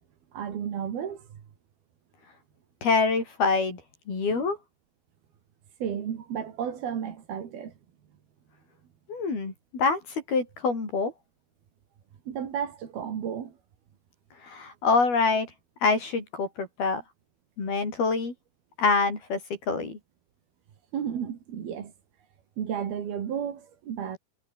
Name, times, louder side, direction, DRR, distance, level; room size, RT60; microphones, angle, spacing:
voice 1, 0.3-1.3 4.3-4.4 5.8-7.7 12.3-13.5 20.9-21.9 22.6-24.2, right 8 dB, 65° right, 4.4 m, -33 dB
voice 2, 2.8-3.8 4.1-4.6 9.1-11.1 14.4-15.5 15.8-17.0 17.6-18.3 18.8-19.4 19.7-20.0, left 4 dB, 65° left, 9.0 m, -25 dB
omnidirectional pair, 4.8 m